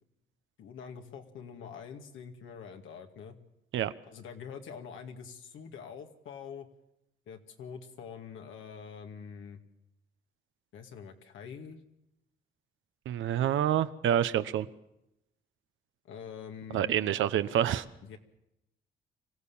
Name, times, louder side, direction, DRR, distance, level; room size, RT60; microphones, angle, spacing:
voice 1, 0.6-3.4 4.0-6.7 7.3-9.6 10.7-11.8 16.0-17.1 18.0-18.2, left 6 dB, 80° left, 4 dB, 2.3 m, -45 dB
voice 2, 13.1-14.7 16.7-17.8, right 10 dB, 75° right, 12 dB, 1.0 m, -27 dB
25.5 x 16.0 x 7.2 m, 0.86 s
cardioid pair, 90°, 20 cm